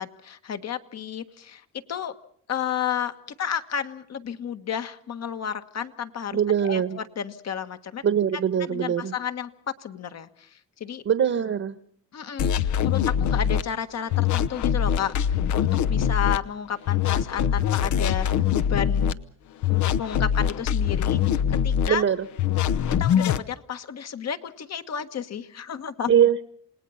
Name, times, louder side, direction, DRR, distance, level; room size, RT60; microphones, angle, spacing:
voice 1, 0.0-2.2 2.5-8.0 8.6-11.0 12.1-19.2 19.7-22.0 23.0-26.1, left 8 dB, 60° left, 9 dB, 1.6 m, -32 dB
voice 2, 6.3-7.0 8.0-9.1 11.0-11.8 21.9-22.2 26.1-26.4, right 8 dB, 50° right, 13 dB, 1.2 m, -22 dB
sound 1, 12.4-13.6 14.1-16.4 16.9-19.1 19.6-21.9 22.4-23.4, left 9 dB, 75° left, 0.9 m, -23 dB
28.0 x 19.0 x 5.7 m, 0.62 s
cardioid pair, 90°, 30 cm